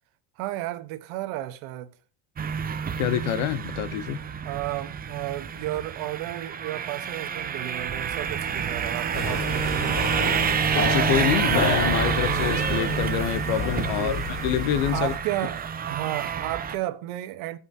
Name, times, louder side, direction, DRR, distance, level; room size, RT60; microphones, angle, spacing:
voice 1, 0.4-1.9 4.4-10.3 13.8-14.3 14.9-17.6, right 15 dB, 85° right, 1.1 m, -33 dB
sound 1, 2.4-16.8, right 7 dB, 20° right, 0.4 m, -28 dB
voice 2, 3.0-4.2 10.8-15.1, left 10 dB, 90° left, 0.8 m, -26 dB
sound 2, 9.1-15.2, left 6 dB, 25° left, 0.7 m, -31 dB
15.5 x 5.6 x 2.7 m
cardioid pair, 140°, 49 cm